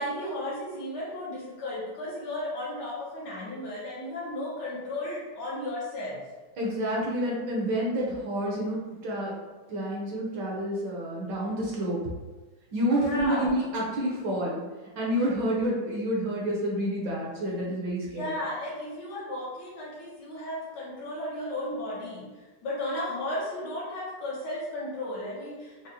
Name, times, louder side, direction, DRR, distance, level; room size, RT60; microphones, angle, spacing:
voice 1, 0.0-6.2 13.0-13.5 18.1-22.3 22.6-25.9, left 1 dB, 65° left, -5 dB, 1.1 m, -34 dB
voice 2, 6.6-9.3 9.7-12.0 12.7-14.6 14.9-18.4, right 1 dB, 70° right, -4 dB, 1.2 m, -29 dB
5.0 x 2.0 x 2.7 m, 1.2 s
omnidirectional pair, 2.3 m